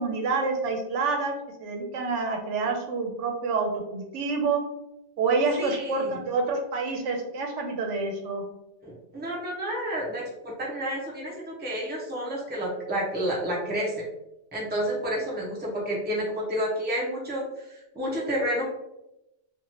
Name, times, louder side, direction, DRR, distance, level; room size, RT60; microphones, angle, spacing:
voice 1, 0.0-1.3 1.6-4.6 5.2-8.4, right 4 dB, 85° right, 3 dB, 0.9 m, -27 dB
voice 2, 5.6-6.2 8.8-14.0 14.5-18.6, equal, 10° right, -4 dB, 0.6 m, -30 dB
2.9 x 2.4 x 2.7 m, 0.91 s
omnidirectional pair, 1.2 m